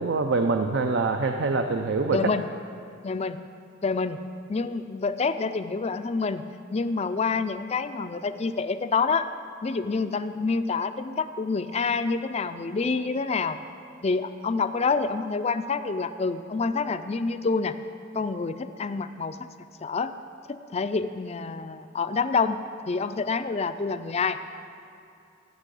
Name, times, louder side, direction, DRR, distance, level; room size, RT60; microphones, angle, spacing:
voice 1, 0.0-2.2, right 3 dB, 60° right, 6 dB, 0.5 m, -25 dB
voice 2, 2.1-2.5 3.0-3.4 3.8-4.2 4.5-6.4 6.7-9.3 9.6-13.6 14.0-17.8 18.1-19.4 19.8-20.1 20.5-24.4, left 4 dB, 30° left, 11 dB, 0.4 m, -27 dB
13.5 x 6.1 x 8.3 m, 2.5 s
head